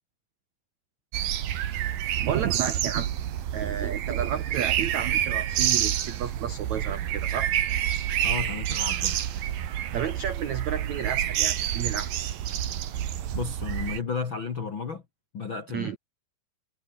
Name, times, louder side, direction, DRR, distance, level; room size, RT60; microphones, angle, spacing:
sound 1, 1.1-14.0, right 11 dB, 60° right, 3.0 m, -28 dB
voice 1, 2.2-3.1 3.5-7.5 9.9-12.1 15.7-16.0, right 9 dB, 80° right, 1.6 m, -31 dB
voice 2, 8.2-9.2 13.3-15.0 15.3-16.0, left 5 dB, 55° left, 1.3 m, -33 dB
omnidirectional pair, 5.4 m